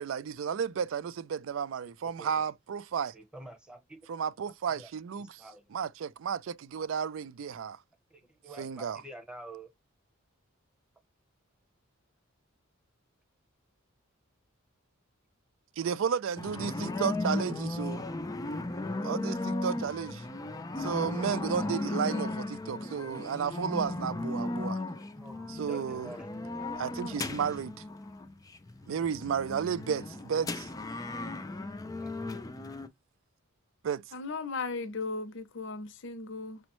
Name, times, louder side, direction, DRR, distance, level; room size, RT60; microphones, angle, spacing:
voice 1, 0.0-3.1 4.1-5.4 5.7-7.8 8.6-9.0 15.8-18.0 19.0-20.2 20.8-24.8 25.5-26.1 26.8-27.7 28.9-30.7 33.8-34.0, right 7 dB, 65° right, 0.3 m, -33 dB
voice 2, 3.1-4.0 4.8-4.9 5.4-5.6 8.1-9.7 25.1-26.3 30.9-31.0 32.0-32.1, right 2 dB, 5° right, 0.9 m, -47 dB
sound 1, 16.4-32.9, left 2 dB, 15° left, 0.4 m, -36 dB
voice 3, 34.1-36.6, left 4 dB, 60° left, 0.6 m, -36 dB
6.1 x 2.1 x 3.0 m
head